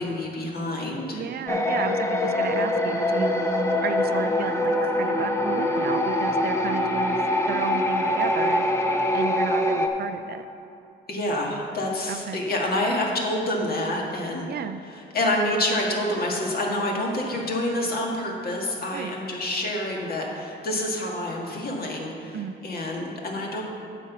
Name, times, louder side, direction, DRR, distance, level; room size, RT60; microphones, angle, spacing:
voice 1, 0.0-1.2 2.0-2.2 11.1-23.6, left 1 dB, 50° left, -1 dB, 1.8 m, -28 dB
voice 2, 1.1-3.4 3.8-7.2 7.5-8.7 9.1-10.4 12.1-12.4 14.5-14.8 18.9-19.1 22.3-22.5, right 8 dB, 55° right, 10 dB, 0.4 m, -33 dB
sound 1, 1.5-9.9, left 1 dB, 15° left, 0.8 m, -24 dB
9.2 x 4.4 x 7.1 m, 2.8 s
cardioid pair, 90°, 20 cm